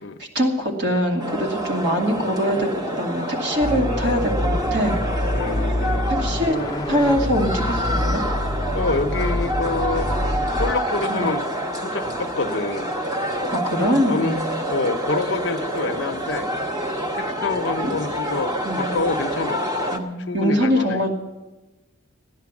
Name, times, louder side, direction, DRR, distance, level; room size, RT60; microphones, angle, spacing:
voice 1, 0.2-4.9 6.1-6.6 6.9-8.2 11.1-11.3 13.5-14.5 17.8-17.9 18.6-18.9 19.9-21.2, equal, 55° right, 0 dB, 2.4 m, -23 dB
sound 1, 1.2-20.0, right 1 dB, 20° right, 1.0 m, -27 dB
sound 2, 3.6-10.7, left 1 dB, 20° left, 0.5 m, -26 dB
voice 2, 5.3-6.1 8.7-10.1 10.6-11.4 11.8-12.9 13.8-14.4 14.7-16.5 17.1-19.6 20.3-21.0, left 3 dB, 60° left, 7 dB, 0.7 m, -27 dB
15.5 x 10.5 x 7.1 m, 1.1 s
head